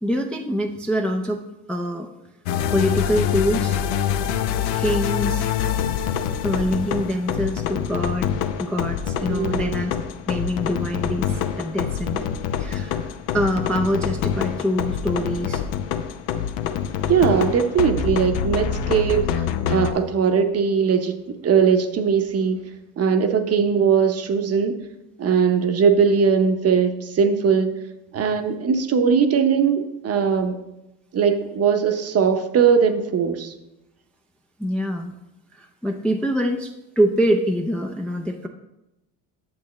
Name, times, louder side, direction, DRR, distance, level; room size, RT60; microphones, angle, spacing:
voice 1, 0.0-2.1 2.7-3.8 4.7-5.4 6.4-9.9 10.3-12.2 12.6-13.1 13.3-15.6 34.6-35.2 35.5-38.5, equal, 5° left, 2 dB, 0.4 m, -25 dB
sound 1, 2.5-19.9, left 8 dB, 75° left, 0.8 m, -25 dB
voice 2, 9.3-9.8 17.1-22.6 23.0-24.8 25.2-27.7 28.1-30.6 31.1-33.5, right 6 dB, 35° right, 7 dB, 0.8 m, -20 dB
8.7 x 7.0 x 3.1 m, 0.93 s
supercardioid pair, 105°, 42 cm